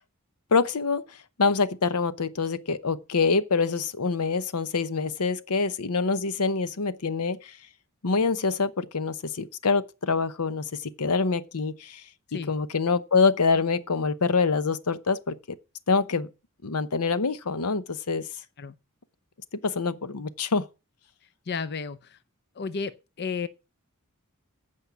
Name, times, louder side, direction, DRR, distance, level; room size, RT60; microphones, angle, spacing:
voice 1, 0.5-7.6 8.0-12.0 12.5-15.4 15.9-16.3 16.6-18.2 19.6-20.7, left 4 dB, 90° left, 0.9 m, -25 dB
voice 2, 21.5-22.2 22.6-23.5, left 5 dB, 50° left, 0.6 m, -32 dB
15.0 x 5.5 x 6.0 m
head